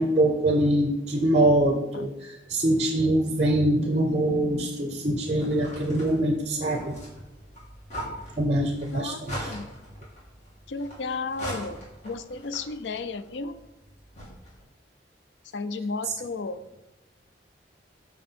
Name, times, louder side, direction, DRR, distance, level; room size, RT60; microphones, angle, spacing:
voice 1, 0.0-6.9 8.4-9.5, right 1 dB, 35° right, 4 dB, 0.6 m, -24 dB
sound 1, 5.4-14.6, equal, 40° left, 2.7 m, -41 dB
voice 2, 10.7-11.8 12.0-13.5 15.5-16.6, left 3 dB, 90° left, 12 dB, 0.5 m, -33 dB
8.8 x 4.2 x 4.4 m, 0.94 s
head